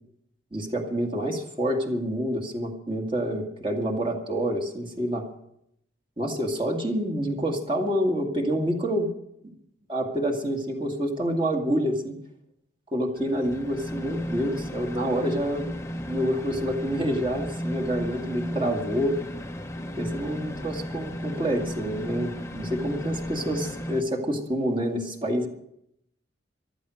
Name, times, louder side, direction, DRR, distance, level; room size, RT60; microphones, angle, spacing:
voice 1, 0.5-5.2 6.2-9.1 9.9-12.2 12.9-15.7 16.0-19.2 20.0-25.5, equal, 25° right, 2 dB, 2.1 m, -27 dB
sound 1, 13.1-24.0, equal, 15° left, 0.8 m, -34 dB
14.5 x 12.5 x 6.4 m, 0.76 s
head